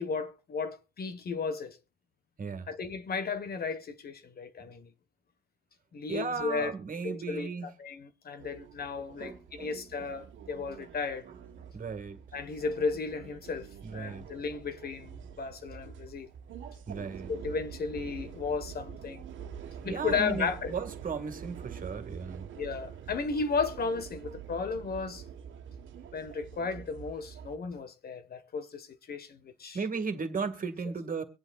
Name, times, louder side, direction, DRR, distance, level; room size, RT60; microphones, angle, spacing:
voice 1, 0.0-1.8 2.7-4.9 5.9-6.7 7.0-11.3 12.3-16.3 17.0-19.2 19.8-20.7 22.6-25.2 26.1-29.8, left 5 dB, 50° left, 1.4 m, -34 dB
voice 2, 6.1-7.7 9.2-10.0 11.3-11.4 11.7-12.2 13.8-14.3 16.9-17.3 19.8-22.5 29.7-31.2, right 5 dB, 45° right, 2.1 m, -36 dB
sound 1, 8.4-27.6, right 8 dB, 75° right, 1.5 m, -46 dB
24.0 x 8.2 x 2.4 m
cardioid pair, 90°, 20 cm